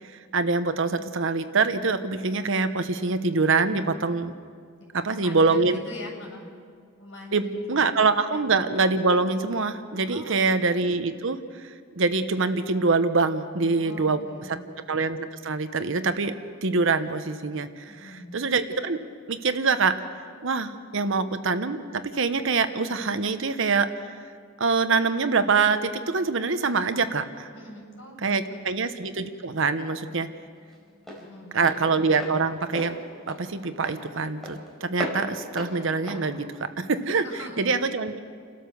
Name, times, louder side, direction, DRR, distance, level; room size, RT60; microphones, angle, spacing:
voice 1, 0.3-4.3 4.9-5.8 7.3-14.2 14.5-14.6 14.9-16.4 16.6-19.0 19.3-20.0 20.4-23.9 24.6-27.5 28.2-30.3 31.5-33.0 33.3-37.3 37.6-38.2, right 4 dB, 65° right, 10 dB, 1.0 m, -25 dB
voice 2, 4.8-6.5 7.0-7.9 8.3-8.4 10.1-10.4 13.7-14.6 17.9-18.4 27.5-28.7 31.1-31.8 37.2-37.6, left 1 dB, 65° left, 0 dB, 7.7 m, -42 dB
Walk footsteps, 28.9-37.5, equal, ahead, 4.5 m, -39 dB
30.0 x 13.0 x 7.0 m, 2.1 s
head